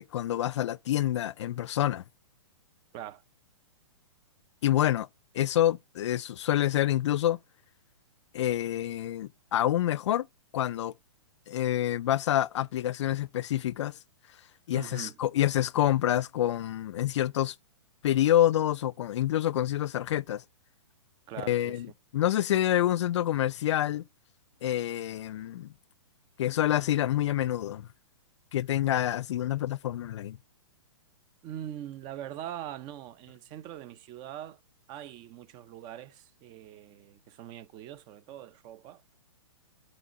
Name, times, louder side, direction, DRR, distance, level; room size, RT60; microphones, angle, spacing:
voice 1, 0.0-2.0 4.6-5.1 5.3-7.4 8.3-10.3 10.5-10.9 11.5-14.0 14.7-17.5 18.0-20.4 21.5-21.9 22.1-24.1 24.6-25.7 26.4-27.9 28.5-30.4, left 12 dB, 65° left, 0.4 m, -27 dB
voice 2, 14.7-15.2 21.3-21.8 31.4-34.6 34.9-39.2, right 11 dB, 30° right, 0.6 m, -42 dB
12.5 x 4.3 x 4.1 m
hypercardioid pair, 140°, 16 cm